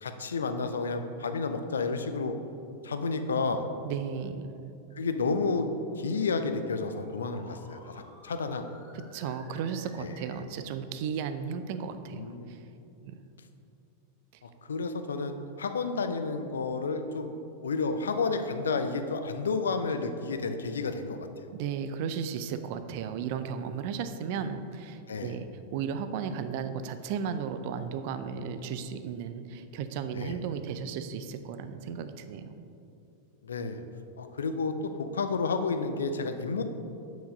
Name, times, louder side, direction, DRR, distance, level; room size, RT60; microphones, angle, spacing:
voice 1, 0.0-2.3 2.8-3.7 5.0-5.7 6.0-8.6 10.0-10.1 12.1-12.5 14.4-17.3 17.6-21.3 25.1-25.4 28.5-28.6 30.1-30.4 33.4-33.8 34.2-36.6, left 4 dB, 70° left, 8 dB, 0.5 m, -31 dB
voice 2, 3.8-4.5 8.9-12.2 12.5-12.6 13.0-13.2 21.5-25.5 25.7-32.5, right 7 dB, 50° right, 10 dB, 0.5 m, -35 dB
sound 1, 5.4-10.4, left 1 dB, 35° left, 1.6 m, -53 dB
7.1 x 6.1 x 5.2 m, 2.7 s
figure-of-eight pair, 90°, 0 cm